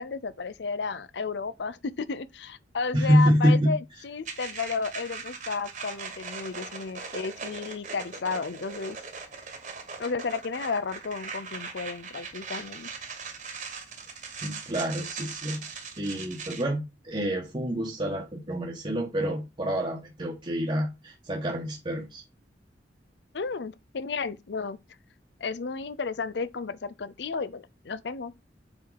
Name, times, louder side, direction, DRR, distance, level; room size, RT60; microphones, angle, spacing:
voice 1, 0.0-9.0 10.0-12.9 23.3-24.8 25.4-28.3, left 4 dB, 70° left, 0.6 m, -33 dB
voice 2, 2.9-3.7 14.4-15.6 16.0-22.2, equal, 30° right, 1.2 m, -26 dB
sound 1, 4.2-16.6, right 5 dB, 45° right, 1.7 m, -40 dB
7.4 x 4.7 x 3.9 m
head